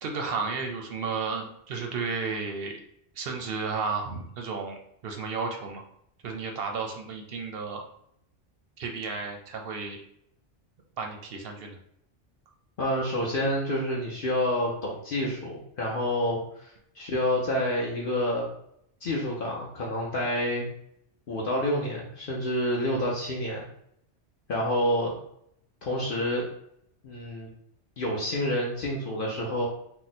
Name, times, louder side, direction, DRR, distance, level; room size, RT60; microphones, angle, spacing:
voice 1, 0.0-2.8 3.2-4.8 5.0-5.8 6.2-7.8 8.8-10.0 11.0-11.8, right 4 dB, 65° right, 3 dB, 0.7 m, -33 dB
voice 2, 12.8-18.5 19.0-20.7 21.3-23.7 24.5-25.1 25.8-26.5 27.0-27.5 28.0-29.7, left 1 dB, 55° left, -3 dB, 0.7 m, -28 dB
2.8 x 2.1 x 4.0 m, 0.72 s
omnidirectional pair, 1.2 m